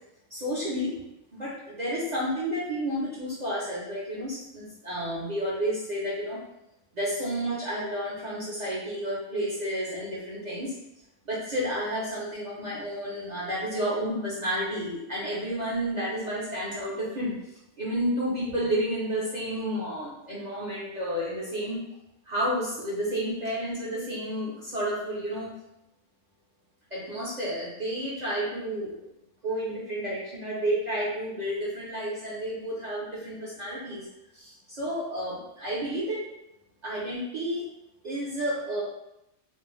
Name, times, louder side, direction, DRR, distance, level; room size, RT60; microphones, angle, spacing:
voice 1, 0.3-0.9 1.3-6.4 6.9-10.7 11.2-17.3 17.8-21.8 22.3-25.5 26.9-29.1 29.4-34.0 34.3-36.2 36.8-37.6 38.0-38.8, equal, 40° right, -7 dB, 0.7 m, -31 dB
2.6 x 2.1 x 3.0 m, 0.86 s
omnidirectional pair, 1.3 m